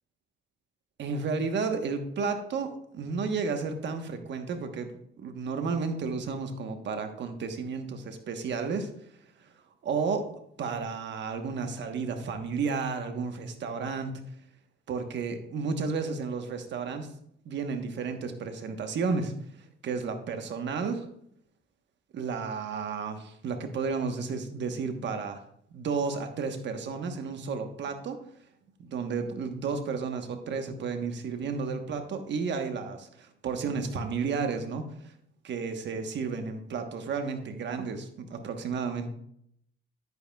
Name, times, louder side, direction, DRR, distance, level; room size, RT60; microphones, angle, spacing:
voice 1, 1.0-4.9 5.2-8.9 9.8-10.3 10.6-14.1 14.9-17.1 17.4-19.3 19.8-21.1 22.1-25.4 25.7-28.2 28.8-34.8 35.4-39.1, right 5 dB, 65° right, 6 dB, 1.2 m, -32 dB
9.9 x 9.2 x 2.3 m, 0.72 s
cardioid pair, 90°, 20 cm